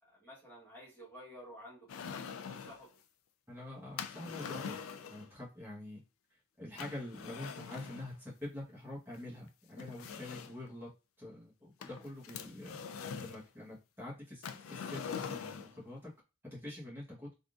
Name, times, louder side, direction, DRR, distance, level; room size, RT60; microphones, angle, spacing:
voice 1, 0.0-3.0, equal, 10° left, -5 dB, 1.3 m, -53 dB
sound 1, 1.9-2.8 4.0-5.3 6.8-8.1 9.1-9.2 9.8-10.7 11.8-13.4 14.4-15.8, left 6 dB, 75° left, 0.4 m, -43 dB
voice 2, 3.5-6.0 6.6-10.9 11.2-12.8 13.0-16.1 16.4-17.3, left 1 dB, 10° right, -6 dB, 1.2 m, -46 dB
3.6 x 2.5 x 2.4 m, 0.29 s
head